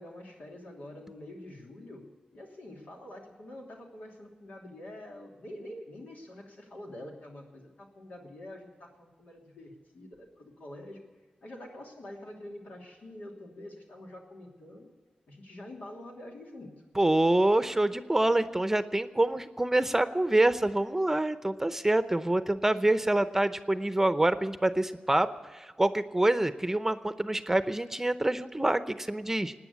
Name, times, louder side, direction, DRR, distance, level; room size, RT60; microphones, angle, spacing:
voice 1, 0.0-11.0 11.4-14.9 15.3-16.7, left 1 dB, 90° left, 0 dB, 3.0 m, -46 dB
voice 2, 17.0-25.3 25.5-29.5, right 1 dB, 15° right, 11 dB, 0.7 m, -26 dB
18.0 x 9.6 x 8.3 m, 1.5 s
wide cardioid pair, 75°, 3 cm